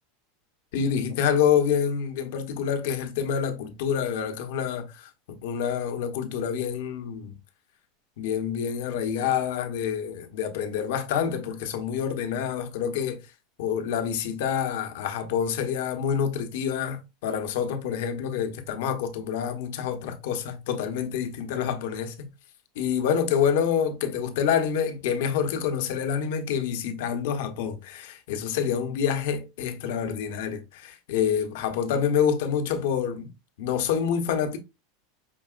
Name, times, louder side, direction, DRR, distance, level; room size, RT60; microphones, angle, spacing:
voice 1, 0.7-7.3 8.2-13.2 13.6-22.3 22.8-33.3 33.6-34.6, left 8 dB, 70° left, 0.8 m, -27 dB
5.3 x 2.9 x 2.4 m
supercardioid pair, 150°, 0 cm